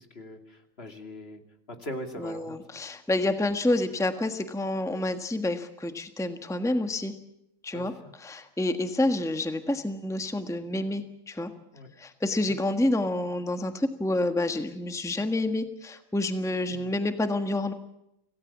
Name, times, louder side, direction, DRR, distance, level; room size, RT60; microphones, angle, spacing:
voice 1, 0.0-1.4 1.7-2.8 7.7-8.1 11.7-11.9 12.4-12.5 16.7-16.9, left 1 dB, 50° left, 5 dB, 2.9 m, -41 dB
voice 2, 2.2-7.1 7.6-7.9 8.2-11.5 12.0-17.7, left 1 dB, ahead, 7 dB, 1.4 m, -28 dB
26.5 x 17.5 x 7.3 m, 0.84 s
omnidirectional pair, 1.4 m